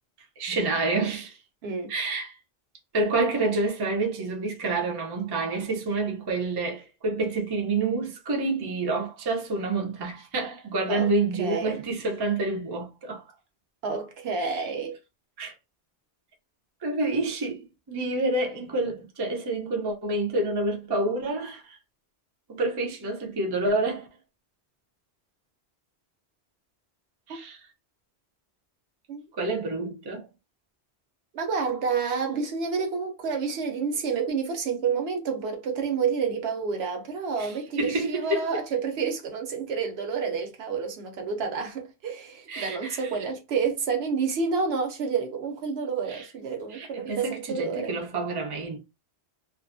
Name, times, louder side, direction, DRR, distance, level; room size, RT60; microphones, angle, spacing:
voice 1, 0.4-1.4 1.9-2.3 2.9-13.2 14.4-14.6 15.4-15.5 16.8-21.8 22.5-24.1 27.3-27.6 29.4-30.3 37.4-37.5 37.8-38.5 42.5-43.1 46.1-46.3 46.7-48.8, right 2 dB, 30° right, 0.4 m, -28 dB
voice 2, 1.6-1.9 10.9-11.1 11.4-11.8 13.8-15.0 27.3-27.4 29.1-29.2 31.3-47.9, right 5 dB, 70° right, 0.9 m, -29 dB
2.5 x 2.3 x 2.5 m
omnidirectional pair, 1.1 m